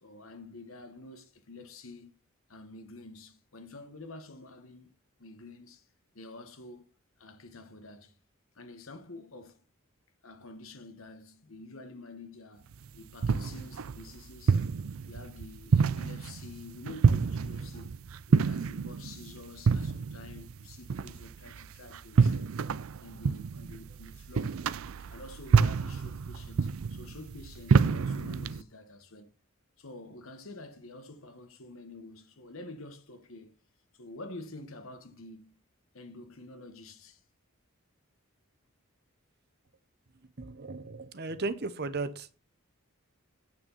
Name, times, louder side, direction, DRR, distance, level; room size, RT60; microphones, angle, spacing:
voice 1, 0.0-2.1 2.5-4.9 5.2-5.9 6.1-6.9 7.2-8.2 8.5-9.6 10.2-14.7 15.1-18.0 18.3-22.5 23.0-24.6 25.0-29.3 29.8-33.5 33.9-35.6 35.9-37.2, left 2 dB, 70° left, 1.3 m, -48 dB
sound 1, 12.7-28.6, right 5 dB, 70° right, 0.4 m, -28 dB
voice 2, 40.4-42.3, right 3 dB, 50° right, 0.9 m, -35 dB
8.7 x 6.2 x 5.4 m
head